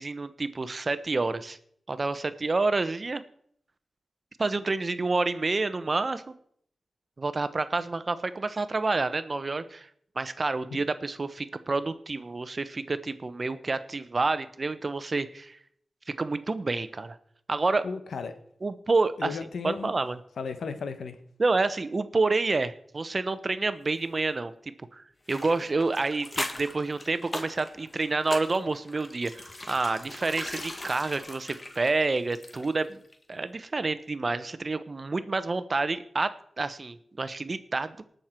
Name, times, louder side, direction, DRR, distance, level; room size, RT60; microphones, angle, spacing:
voice 1, 0.0-1.6 1.9-3.2 4.4-6.3 7.2-9.9 10.2-15.6 16.1-17.2 17.5-17.9 18.6-19.4 19.6-20.2 21.4-24.5 24.9-33.0 33.3-38.1, right 3 dB, 50° right, 13 dB, 0.9 m, -28 dB
voice 2, 17.8-18.3 19.2-19.9 20.4-21.2, left 5 dB, 85° left, 10 dB, 1.1 m, -34 dB
sound 1, 25.3-32.9 33.1-33.2, left 2 dB, 35° left, 1.9 m, -39 dB
19.0 x 6.6 x 4.5 m, 0.65 s
cardioid pair, 50°, 0 cm